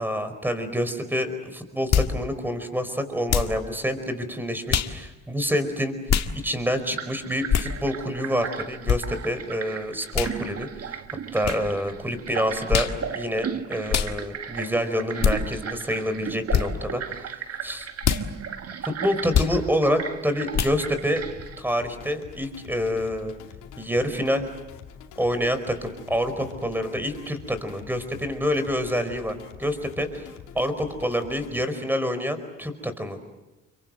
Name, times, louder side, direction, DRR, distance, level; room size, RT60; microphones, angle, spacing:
voice 1, 0.0-5.9 6.4-11.0 11.3-12.9 13.1-17.9 18.8-21.2 21.6-23.3 23.8-24.5 25.2-30.3 30.5-33.2, equal, 5° right, 10 dB, 4.8 m, -27 dB
sound 1, 1.9-2.1 3.3-3.6 4.7-4.9 6.1-6.3 7.5-7.7 8.9-9.0 10.1-10.3 11.4-11.6 12.7-13.0 13.9-14.1 15.2-15.4 16.5-16.7 18.0-18.2 19.3-19.5 20.5-20.8, left 8 dB, 60° left, 1.9 m, -22 dB
sound 2, 7.0-21.6, right 7 dB, 55° right, 1.7 m, -36 dB
sound 3, 21.4-31.7, left 8 dB, 90° left, 2.7 m, -45 dB
30.0 x 23.5 x 7.8 m, 1.0 s
cardioid pair, 90°, 30 cm